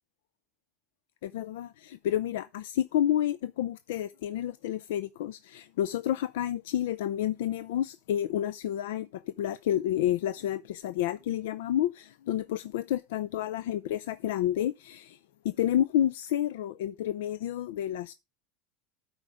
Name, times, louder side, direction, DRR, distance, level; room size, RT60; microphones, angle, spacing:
voice 1, 1.2-15.2 15.4-18.1, left 11 dB, 85° left, 0.5 m, -30 dB
12.5 x 4.8 x 5.0 m
supercardioid pair, 165°, 0 cm